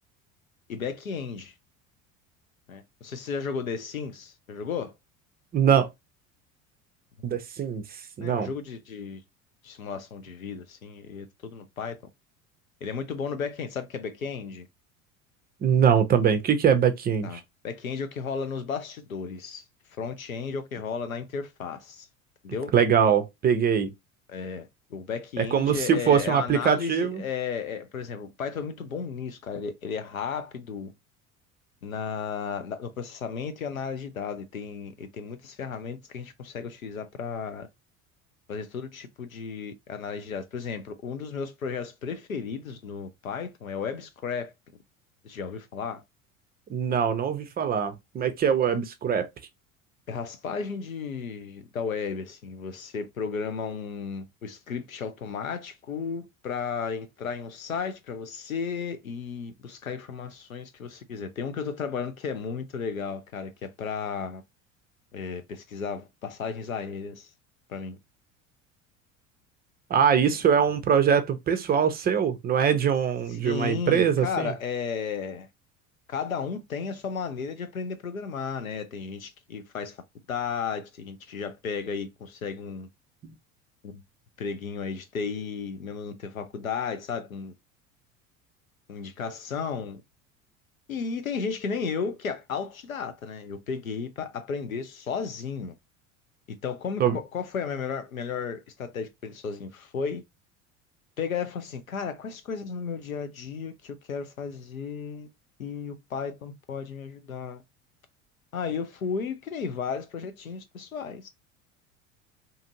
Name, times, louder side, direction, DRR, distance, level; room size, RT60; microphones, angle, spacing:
voice 1, 0.7-1.5 2.7-4.9 8.2-9.2 9.6-12.0 12.8-14.7 17.2-19.6 19.9-22.1 22.4-22.7 24.3-30.9 31.8-37.7 38.5-44.5 45.2-46.0 50.1-64.4 65.1-67.3 67.7-68.0 73.3-75.5 76.1-80.0 80.3-82.9 83.8-84.0 84.4-87.5 88.9-90.0 90.9-95.7 96.6-100.2 101.2-105.3 105.6-107.6 108.5-111.3, left 6 dB, 90° left, 0.6 m, -34 dB
voice 2, 5.5-5.9 7.2-8.5 15.6-17.4 22.7-23.9 25.4-27.2 46.7-49.3 69.9-74.5 83.2-83.3 97.0-97.2, right 7 dB, 25° right, 0.5 m, -23 dB
2.7 x 2.5 x 2.6 m
figure-of-eight pair, 70°, 40 cm